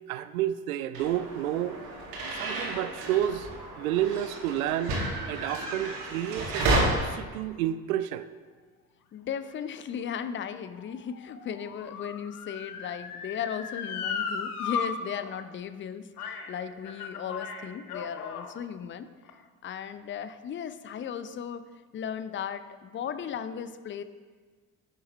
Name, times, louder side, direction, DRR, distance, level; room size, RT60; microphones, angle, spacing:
voice 1, 0.1-1.8 2.3-3.5 3.8-5.0 5.3-8.3, right 11 dB, 70° right, 14 dB, 0.6 m, -30 dB
sound 1, 0.9-6.8, right 2 dB, 55° right, 2.3 m, -32 dB
voice 2, 9.1-21.6 21.9-24.0, left 8 dB, 25° left, 12 dB, 0.6 m, -36 dB
Motor vehicle (road) / Siren, 9.7-14.9 15.2-15.3 16.2-16.5 16.8-18.5 19.2-19.3, left 6 dB, 75° left, 0.9 m, -36 dB
10.5 x 8.0 x 3.3 m, 1.5 s
figure-of-eight pair, 50°, 45 cm